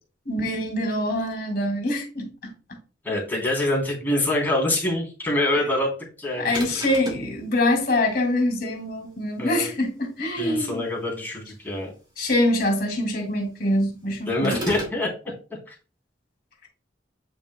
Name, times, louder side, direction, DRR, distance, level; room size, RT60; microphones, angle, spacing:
voice 1, 0.3-2.5 6.4-10.8 12.2-14.6, left 1 dB, 55° left, 2 dB, 2.6 m, -24 dB
voice 2, 3.0-6.8 9.4-9.7 10.4-11.9 14.3-15.1 15.7-15.8, left 1 dB, 10° left, -3 dB, 3.4 m, -25 dB
sound 1, 6.5-7.3 14.4-15.0, right 1 dB, 25° right, 2.9 m, -33 dB
8.9 x 7.2 x 2.2 m, 0.36 s
head